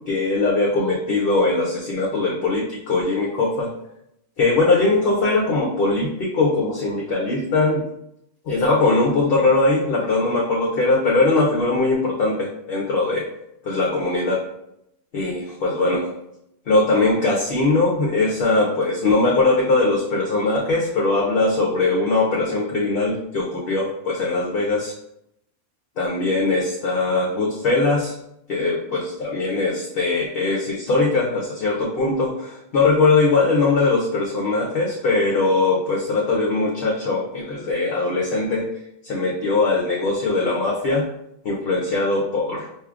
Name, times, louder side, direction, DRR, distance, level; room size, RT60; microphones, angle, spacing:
voice 1, 0.1-3.7 4.4-7.8 8.5-13.3 13.6-14.4 15.1-16.1 16.7-24.9 26.0-28.1 28.5-38.7 39.0-41.1 41.4-42.7, left 3 dB, 55° left, -3 dB, 0.7 m, -21 dB
4.8 x 2.7 x 2.3 m, 0.79 s
omnidirectional pair, 1.3 m